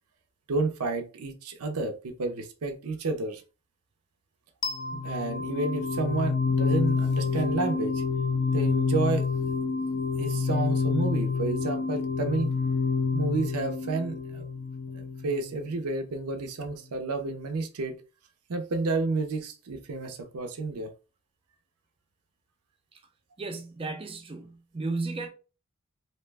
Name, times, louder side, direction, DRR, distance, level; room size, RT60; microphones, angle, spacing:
voice 1, 0.5-3.4 4.9-8.0 8.5-9.3 10.2-12.5 13.1-14.4 14.9-18.0 18.5-20.9, right 3 dB, 85° right, 0.6 m, -30 dB
sound 1, 4.6-15.6, left 4 dB, 40° left, 0.4 m, -28 dB
voice 2, 23.4-25.3, right 3 dB, 25° right, 0.4 m, -34 dB
2.8 x 2.2 x 3.3 m
head